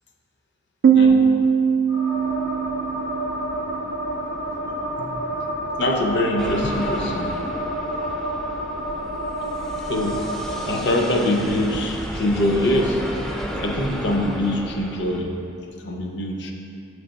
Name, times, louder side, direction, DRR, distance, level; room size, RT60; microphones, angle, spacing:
Piano, 0.8-4.3, right 6 dB, 75° right, 0.3 m, -20 dB
sound 1, 1.9-10.8, equal, 80° left, 1.4 m, -29 dB
voice 1, 5.8-7.4 9.8-10.2 10.6-13.0 13.6-15.4 15.8-16.5, left 1 dB, 60° left, 2 dB, 0.6 m, -23 dB
sound 2, 6.4-15.2, equal, ahead, 0.3 m, -33 dB
7.6 x 3.4 x 3.9 m, 2.7 s
head